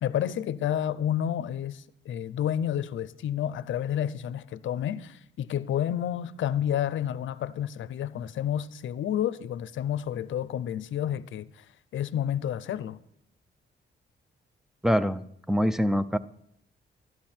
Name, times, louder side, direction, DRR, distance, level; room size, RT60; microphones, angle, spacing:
voice 1, 0.0-11.6 11.9-13.0, left 10 dB, 80° left, 0.6 m, -30 dB
voice 2, 14.8-16.2, equal, ahead, 0.4 m, -25 dB
12.5 x 12.0 x 4.4 m
cardioid pair, 115°, 20 cm